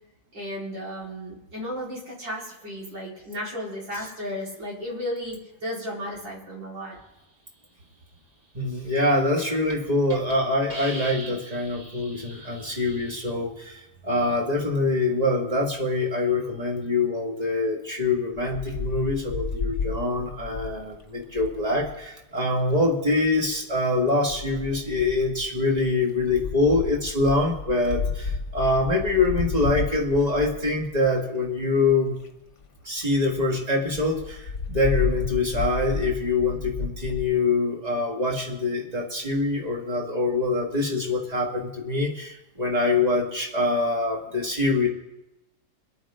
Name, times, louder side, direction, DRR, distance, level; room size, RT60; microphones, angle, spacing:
voice 1, 0.3-7.0, equal, 90° right, -5 dB, 5.0 m, -34 dB
voice 2, 8.5-32.2 32.8-44.9, left 2 dB, 20° right, -1 dB, 2.2 m, -24 dB
Hiss, 9.7-9.8 10.1-10.3 10.7-13.3, right 2 dB, 55° right, 2.3 m, -40 dB
Wind, 18.4-22.0 23.1-23.6 24.3-31.3 31.9-32.0 32.2-32.3 32.6-32.7 33.0-33.1 33.3-33.5 33.9-37.3, left 5 dB, 45° left, 1.5 m, -32 dB
24.5 x 9.0 x 3.8 m, 0.92 s
omnidirectional pair, 1.9 m